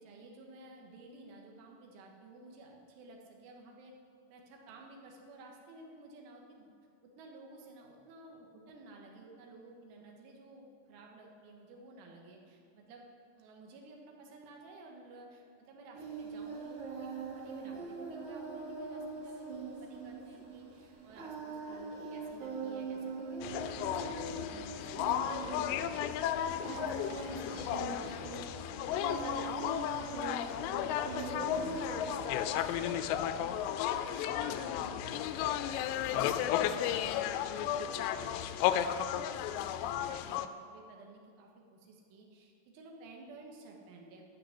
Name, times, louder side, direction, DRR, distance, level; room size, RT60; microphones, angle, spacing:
voice 1, 0.0-4.0 4.3-6.7 7.0-13.1 13.4-24.0 24.3-25.8 26.2-30.7 31.0-35.8 36.1-44.2, right 2 dB, 85° right, 0 dB, 3.9 m, -53 dB
Singing, 15.9-32.6, right 4 dB, 60° right, 4.2 m, -42 dB
sound 1, 23.4-40.5, left 10 dB, 90° left, 2.4 m, -34 dB
13.0 x 6.5 x 9.9 m, 2.3 s
omnidirectional pair, 5.6 m